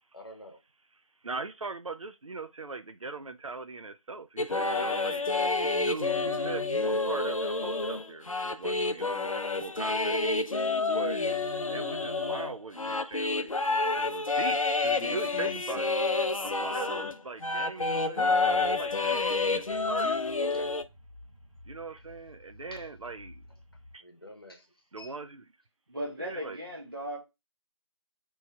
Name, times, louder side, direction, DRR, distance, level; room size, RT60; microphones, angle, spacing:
voice 1, 0.1-0.6 20.5-20.7 22.7-22.9 24.0-25.2, left 1 dB, 45° left, 0.9 m, -48 dB
voice 2, 1.2-5.3 5.8-10.3 10.9-11.3 11.7-13.6 13.9-16.0 16.4-20.2 21.7-23.4 23.9-24.0 24.9-25.4 26.2-26.6, right 3 dB, 75° right, 0.4 m, -40 dB
sound 1, 4.4-17.2 17.4-20.8, left 3 dB, 85° left, 0.5 m, -29 dB
sound 2, 18.3-23.9, left 1 dB, 10° right, 2.7 m, -53 dB
voice 3, 25.9-27.2, equal, 45° right, 1.2 m, -37 dB
6.8 x 3.1 x 2.2 m
figure-of-eight pair, 170°, 17 cm